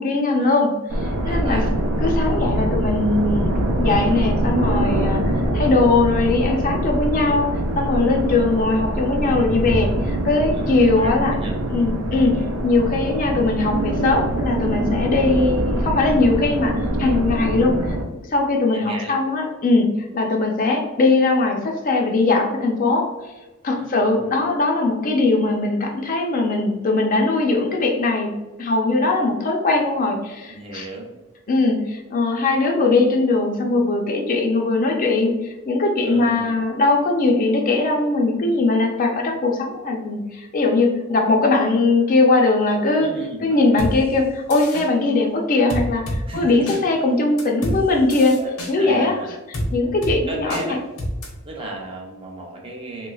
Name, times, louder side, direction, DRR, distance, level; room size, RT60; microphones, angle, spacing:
voice 1, 0.0-1.6 2.0-5.2 5.5-7.5 7.8-11.4 11.7-18.0 18.3-23.1 23.6-28.3 28.6-30.9 31.5-43.1 43.4-48.4 48.7-49.2 49.7-50.8, left 3 dB, 40° left, 2 dB, 0.4 m, -20 dB
sound 1, 0.9-18.0, right 1 dB, 80° right, 0.5 m, -23 dB
voice 2, 1.2-1.7 10.5-11.1 11.4-11.6 18.7-19.2 23.7-24.4 30.4-31.1 36.0-36.6 42.9-43.6 46.2-46.8 48.4-49.3 50.3-50.8 51.4-53.1, right 2 dB, 25° right, 0 dB, 0.5 m, -34 dB
sound 2, 43.8-43.9 44.5-44.9 45.7-46.2 46.7-46.8 47.4-47.8 48.1-48.7 49.5-49.7 50.0-50.2 50.5-50.6 51.0-51.3, equal, 80° left, 0.9 m, -27 dB
3.2 x 3.0 x 2.3 m, 1.1 s
head